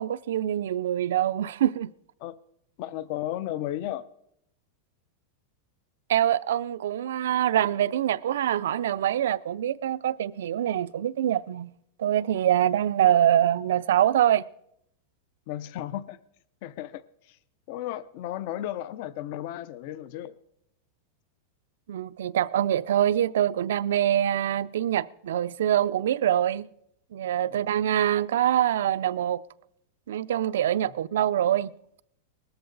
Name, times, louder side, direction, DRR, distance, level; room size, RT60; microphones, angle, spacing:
voice 1, 0.0-1.9 6.1-11.7 12.0-14.4 21.9-26.7 27.1-29.4 30.1-31.7, right 11 dB, 80° right, 0.5 m, -24 dB
voice 2, 2.8-4.1 15.5-16.2 16.6-17.4 17.7-20.4 27.5-27.8, left 13 dB, 45° left, 0.6 m, -34 dB
19.5 x 13.5 x 3.9 m
supercardioid pair, 165°, 0 cm